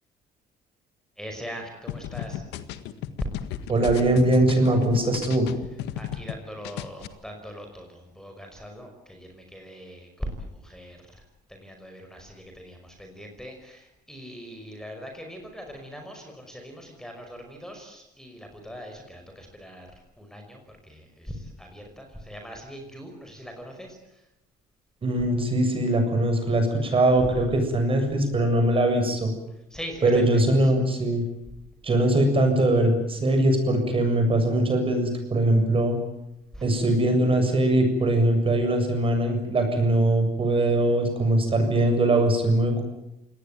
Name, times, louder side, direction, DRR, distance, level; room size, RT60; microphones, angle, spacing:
voice 1, 1.2-2.4 5.9-11.2 11.5-19.9 20.2-24.2 29.7-30.3 30.6-30.7 36.5-36.7, equal, 5° left, 4 dB, 5.6 m, -41 dB
sound 1, 1.9-6.4 6.6-7.1, left 11 dB, 90° left, 1.7 m, -35 dB
voice 2, 3.7-5.5 25.0-29.3 30.0-31.2 31.8-36.0 36.6-42.8, right 1 dB, 30° right, 5 dB, 7.4 m, -21 dB
27.0 x 19.5 x 9.3 m, 0.88 s
cardioid pair, 110°, 17 cm